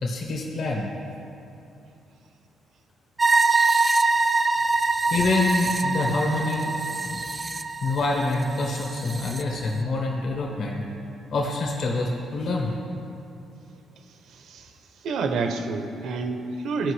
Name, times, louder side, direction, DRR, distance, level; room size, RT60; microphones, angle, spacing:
voice 1, 0.0-0.9 5.1-6.7 7.1-7.2 7.8-10.8 11.3-12.7, left 2 dB, 65° left, -2 dB, 1.3 m, -26 dB
sound 1, 3.2-9.4, right 3 dB, 25° right, 0.4 m, -24 dB
voice 2, 15.0-16.9, right 4 dB, 75° right, 6 dB, 0.7 m, -28 dB
15.0 x 5.2 x 3.2 m, 2.7 s
cardioid pair, 90°, 0 cm